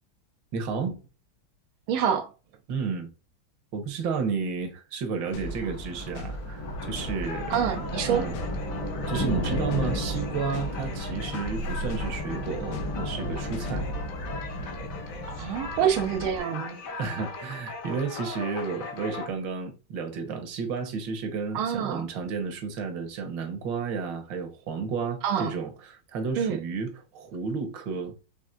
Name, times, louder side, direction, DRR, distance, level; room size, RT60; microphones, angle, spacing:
voice 1, 0.5-1.0 2.7-3.1 3.7-8.4 9.1-13.9 17.0-28.1, right 5 dB, 70° right, 1.7 m, -32 dB
voice 2, 1.9-2.3 7.5-8.2 15.4-16.8 21.5-22.1 25.2-25.5 26.4-26.6, right 8 dB, 90° right, 1.6 m, -26 dB
Thunder, 5.2-16.4, left 1 dB, 70° left, 2.4 m, -34 dB
sound 1, 5.3-14.1, left 1 dB, 90° left, 1.5 m, -39 dB
sound 2, 6.8-19.3, left 4 dB, 55° left, 1.0 m, -40 dB
5.8 x 3.5 x 2.4 m
omnidirectional pair, 2.2 m